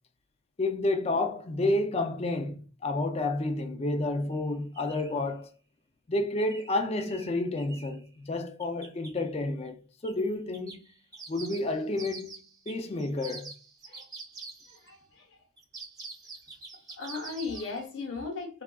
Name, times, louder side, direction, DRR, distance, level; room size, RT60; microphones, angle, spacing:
voice 1, 0.6-5.5 6.1-10.9 11.3-12.4 12.7-13.5, left 2 dB, 30° left, 0.4 m, -30 dB
sound 1, 4.3-4.4 4.7-5.2 6.4-8.0 8.6-9.2 10.0-10.2 10.5-14.9 15.6-17.8, right 4 dB, 20° right, 0.6 m, -46 dB
voice 2, 14.7-15.3 17.0-18.6, left 4 dB, 65° left, 0.9 m, -37 dB
3.5 x 2.3 x 2.3 m
head